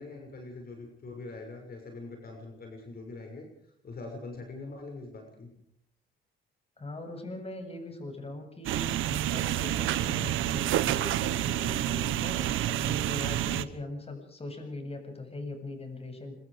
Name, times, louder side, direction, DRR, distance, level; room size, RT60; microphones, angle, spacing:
voice 1, 0.0-3.5 3.8-5.5, left 3 dB, 50° left, 2 dB, 6.5 m, -43 dB
voice 2, 6.8-16.4, left 2 dB, 30° left, 5 dB, 7.7 m, -40 dB
sound 1, 8.6-13.6, right 13 dB, 85° right, 1.1 m, -29 dB
26.0 x 23.5 x 5.1 m, 0.65 s
cardioid pair, 90°, 20 cm